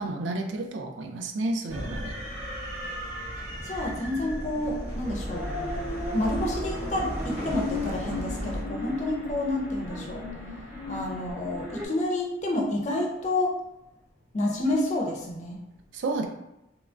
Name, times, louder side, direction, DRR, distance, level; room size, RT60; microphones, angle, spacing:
voice 1, 0.0-2.1 15.9-16.3, right 2 dB, 70° right, 4 dB, 0.4 m, -31 dB
sound 1, 1.7-8.6, equal, 90° right, 1.5 m, -35 dB
voice 2, 3.6-5.5 6.1-10.3 10.9-13.6 14.3-15.7, left 1 dB, 35° left, 0 dB, 0.5 m, -29 dB
sound 2, 5.0-11.9, left 2 dB, 15° right, 0.8 m, -36 dB
3.0 x 2.2 x 2.5 m, 0.88 s
head